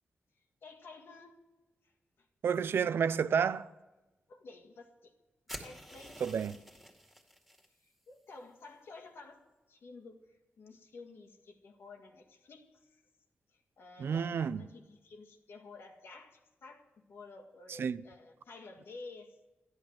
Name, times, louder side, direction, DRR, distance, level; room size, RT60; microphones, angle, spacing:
voice 1, 0.6-1.4 4.3-5.1 5.6-6.2 8.1-9.4 9.7-10.2 10.6-12.7 13.8-19.3, left 3 dB, 85° left, 1.9 m, -51 dB
voice 2, 2.4-3.7 6.2-6.6 14.0-14.6 17.7-18.0, right 7 dB, 85° right, 0.5 m, -30 dB
sound 1, 5.5-7.7, equal, ahead, 2.1 m, -48 dB
13.5 x 10.5 x 7.4 m
wide cardioid pair, 110°, 4 cm